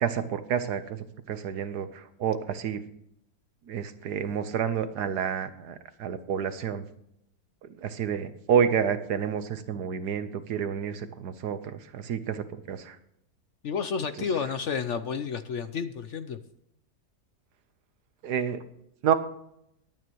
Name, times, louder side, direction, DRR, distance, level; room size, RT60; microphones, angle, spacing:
voice 1, 0.0-2.8 3.7-6.8 7.8-13.0 18.2-18.6 19.0-19.1, right 8 dB, 80° right, 11 dB, 1.5 m, -29 dB
voice 2, 13.6-16.4, left 6 dB, 60° left, 11 dB, 0.8 m, -31 dB
22.5 x 9.4 x 3.1 m, 0.76 s
omnidirectional pair, 1.7 m